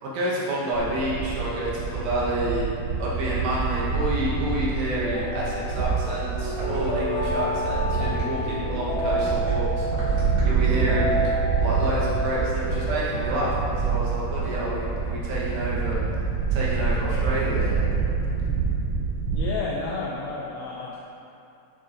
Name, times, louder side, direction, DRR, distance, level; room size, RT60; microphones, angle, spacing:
voice 1, 0.0-2.7 3.0-11.1 11.6-16.0 16.5-17.9, right 1 dB, 75° right, -7 dB, 3.1 m, -29 dB
sound 1, 0.7-19.4, right 5 dB, 90° right, 2.4 m, -27 dB
sound 2, 5.0-14.2, equal, 70° left, 3.5 m, -30 dB
sound 3, 6.5-12.6, right 1 dB, 60° right, 3.0 m, -42 dB
voice 2, 19.3-21.0, left 3 dB, 90° left, -3 dB, 2.3 m, -31 dB
8.5 x 6.9 x 2.5 m, 2.7 s
omnidirectional pair, 5.4 m